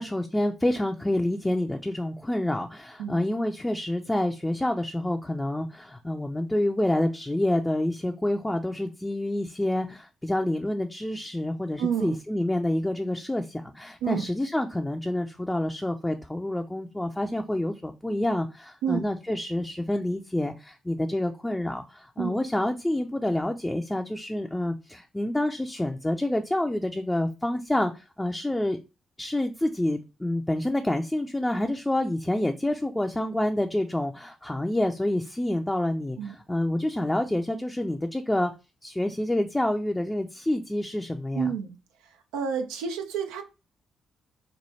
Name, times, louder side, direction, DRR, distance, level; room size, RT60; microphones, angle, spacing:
voice 1, 0.0-28.8 29.2-38.5 38.8-41.5, left 1 dB, 15° left, 0.5 m, -28 dB
voice 2, 11.8-12.2 14.0-14.3 18.8-19.0 22.2-22.3 36.2-36.3 41.3-41.8 42.0-43.4, right 7 dB, 90° right, 0.6 m, -29 dB
3.2 x 2.2 x 4.1 m
supercardioid pair, 50°, 0 cm